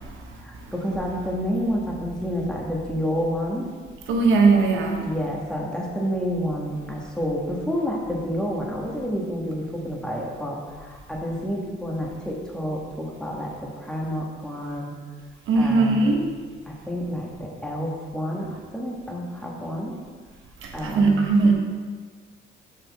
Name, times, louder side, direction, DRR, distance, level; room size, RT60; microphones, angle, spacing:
voice 1, 0.4-3.7 5.0-15.0 15.5-16.3 16.7-20.0 20.7-21.3, equal, 5° left, -2 dB, 1.5 m, -29 dB
voice 2, 4.1-5.0 15.5-16.2 20.6-21.5, right 3 dB, 85° right, 1 dB, 1.1 m, -19 dB
6.6 x 6.4 x 3.6 m, 1.6 s
cardioid pair, 90°, 20 cm